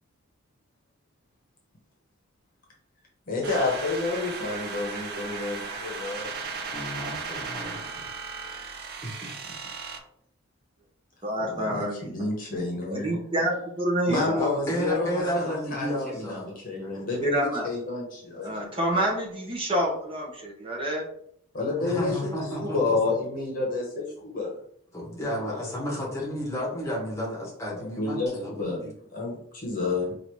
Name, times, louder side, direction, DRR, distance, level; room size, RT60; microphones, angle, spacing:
voice 1, 3.3-6.4 11.4-11.8 12.1-13.2 14.1-18.7 21.5-24.6 25.5-25.7 27.8-28.3 28.6-28.9 29.1-30.1, left 3 dB, 40° left, -2 dB, 1.0 m, -30 dB
sound 1, 3.4-10.0, right 4 dB, 45° right, 0.6 m, -36 dB
voice 2, 6.7-8.1 9.0-9.3 11.7-11.8 14.1-16.5 16.8-17.1 21.8-23.1 24.9-28.9 29.8-30.1, equal, 15° left, -4 dB, 1.2 m, -32 dB
voice 3, 11.2-12.1 12.9-14.5 17.2-17.7 18.4-21.1, right 1 dB, 25° right, -2 dB, 0.9 m, -27 dB
4.9 x 2.5 x 3.1 m, 0.68 s
head